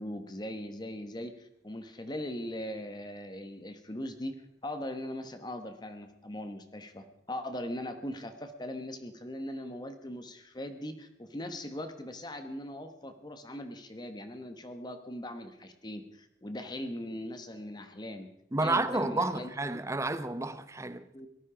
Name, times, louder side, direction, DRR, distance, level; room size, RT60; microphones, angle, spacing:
voice 1, 0.0-18.3 18.6-19.8 21.1-21.3, left 1 dB, 25° left, 1.1 m, -40 dB
voice 2, 18.5-21.1, right 2 dB, 15° right, 0.7 m, -30 dB
18.5 x 13.0 x 5.0 m
head